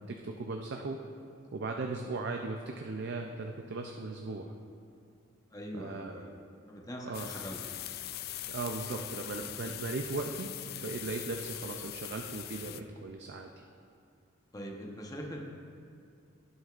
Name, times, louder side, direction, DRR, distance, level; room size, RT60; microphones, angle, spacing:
voice 1, 0.1-1.0 1.5-4.5 5.7-6.1 7.0-7.4 8.5-10.5 10.8-13.5, right 3 dB, 55° right, 3 dB, 0.5 m, -37 dB
voice 2, 5.5-6.4 6.7-7.6 9.0-9.1 12.6-12.8 14.5-15.4, equal, 20° left, -1 dB, 0.9 m, -42 dB
sound 1, 7.1-12.8, left 13 dB, 50° left, 0.3 m, -41 dB
18.0 x 6.3 x 2.5 m, 2.6 s
head